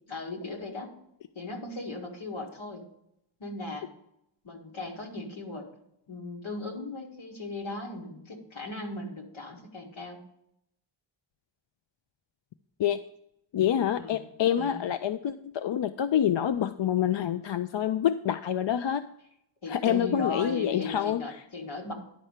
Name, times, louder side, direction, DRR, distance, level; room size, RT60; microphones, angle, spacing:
voice 1, 0.1-0.9 1.4-2.8 3.4-3.9 4.4-5.7 6.1-10.2 13.9-14.2 14.6-14.8 19.6-21.9, left 3 dB, 90° left, 0 dB, 1.9 m, -37 dB
voice 2, 13.5-19.0 19.7-21.4, left 10 dB, 70° left, 9 dB, 0.5 m, -27 dB
10.5 x 4.3 x 6.5 m, 0.78 s
cardioid pair, 50°, 46 cm